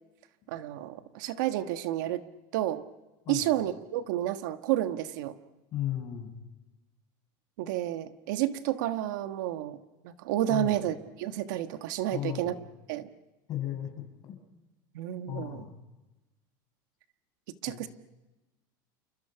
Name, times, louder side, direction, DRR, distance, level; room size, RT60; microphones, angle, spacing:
voice 1, 0.5-2.2 2.5-2.8 3.3-5.4 7.6-9.8 10.0-12.6 12.9-13.1 14.9-15.7 17.6-17.9, right 13 dB, 80° right, 9 dB, 1.5 m, -30 dB
voice 2, 5.7-6.3 10.5-10.7 12.1-12.6 13.5-14.3 15.3-15.7 17.7-17.9, left 12 dB, 40° left, 4 dB, 6.2 m, -35 dB
29.5 x 26.5 x 5.9 m, 1.1 s
supercardioid pair, 150°, 10 cm